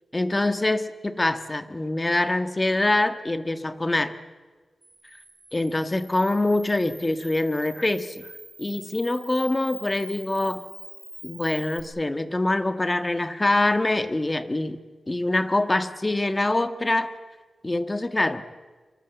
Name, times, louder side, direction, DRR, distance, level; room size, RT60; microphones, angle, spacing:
voice 1, 0.1-4.1 5.5-8.3 8.6-10.6 11.2-14.8 15.1-17.2 17.6-18.4, left 2 dB, 20° left, 11 dB, 1.6 m, -24 dB
Camera, 4.8-11.8, right 2 dB, 20° right, 6.4 m, -45 dB
26.0 x 24.0 x 8.2 m, 1.4 s
wide cardioid pair, 100°, 0 cm